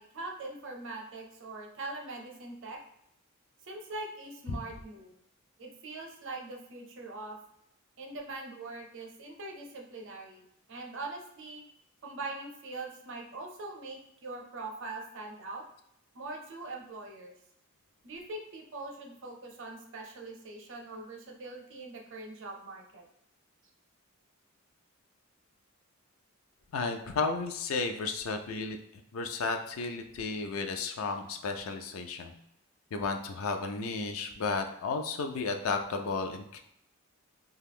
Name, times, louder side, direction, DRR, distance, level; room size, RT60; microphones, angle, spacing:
voice 1, 0.0-2.8 3.6-5.1 5.6-7.4 8.0-11.6 12.0-15.6 16.1-17.3 18.0-23.0, right 2 dB, 60° right, 1 dB, 0.6 m, -42 dB
voice 2, 26.7-28.8 29.1-32.3 32.9-36.6, left 4 dB, 70° left, 5 dB, 0.4 m, -33 dB
2.5 x 2.3 x 3.4 m, 0.77 s
head